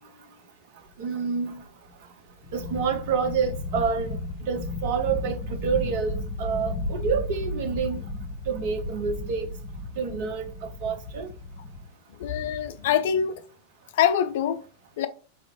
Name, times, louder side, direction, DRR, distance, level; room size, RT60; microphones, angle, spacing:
voice 1, 1.0-1.6 2.5-8.0 8.5-9.5 10.0-11.3, right 6 dB, 50° right, 0.7 m, -28 dB
sound 1, 1.6-1.7 1.9-2.0 2.4-11.9, left 2 dB, 35° left, 0.8 m, -34 dB
voice 2, 12.2-13.4 13.9-14.6 15.0-15.1, left 9 dB, 55° left, 0.4 m, -24 dB
4.0 x 2.5 x 3.0 m
figure-of-eight pair, 90°, 0 cm